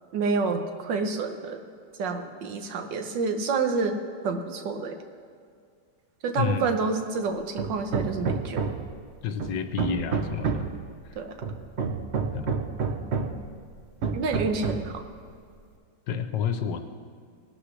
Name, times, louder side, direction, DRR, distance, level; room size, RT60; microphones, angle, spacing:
voice 1, 0.1-1.6 2.0-4.0 4.2-5.0 6.2-8.8 11.1-11.3 14.1-15.0, right 4 dB, 80° right, 6 dB, 1.7 m, -28 dB
Hammer, 7.6-9.0 9.4-10.8 11.4-13.5 14.0-15.0, right 5 dB, 50° right, 0.8 m, -29 dB
voice 2, 9.2-10.6 12.3-12.6 16.1-16.8, left 7 dB, 80° left, 9 dB, 1.5 m, -29 dB
19.0 x 12.0 x 3.3 m, 2.2 s
omnidirectional pair, 1.9 m